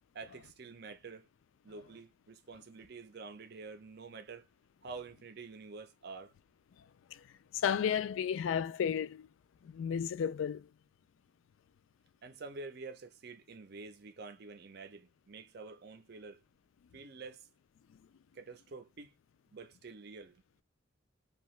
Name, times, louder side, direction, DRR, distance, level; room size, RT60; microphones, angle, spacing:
voice 1, 0.1-1.3 1.6-4.5 4.8-6.3 12.2-16.4 16.9-17.5 18.3-19.1 19.5-20.4, right 4 dB, 50° right, 0.5 m, -48 dB
voice 2, 7.5-9.3 9.6-10.7, left 8 dB, 70° left, 0.3 m, -33 dB
2.8 x 2.3 x 3.0 m
head